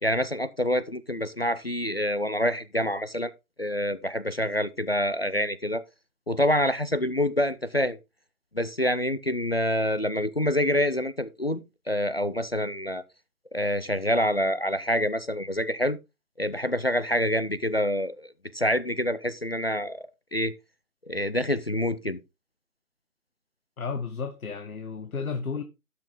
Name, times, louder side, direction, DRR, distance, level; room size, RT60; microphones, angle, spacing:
voice 1, 0.0-3.3 3.6-5.8 6.3-8.0 8.5-11.6 11.9-13.0 13.5-16.0 16.4-20.5 21.1-22.2, left 1 dB, 45° left, 0.5 m, -26 dB
voice 2, 23.8-25.6, left 5 dB, 65° left, 1.3 m, -33 dB
12.0 x 5.9 x 3.6 m
hypercardioid pair, 170°, 45 cm